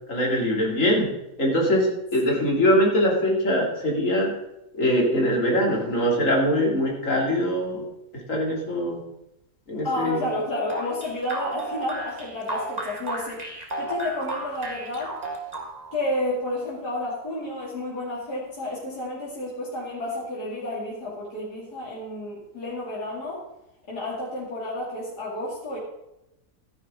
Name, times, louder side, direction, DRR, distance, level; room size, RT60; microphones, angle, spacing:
voice 1, 0.1-1.1 1.4-4.3 4.7-7.8 8.1-9.0 9.7-10.2, equal, 50° left, -2 dB, 3.3 m, -22 dB
voice 2, 9.8-15.1 15.9-23.4 23.9-25.8, left 1 dB, 75° left, -6 dB, 3.4 m, -31 dB
sound 1, 10.7-16.0, right 2 dB, 25° right, 1.8 m, -33 dB
13.5 x 10.5 x 3.8 m, 0.89 s
omnidirectional pair, 1.7 m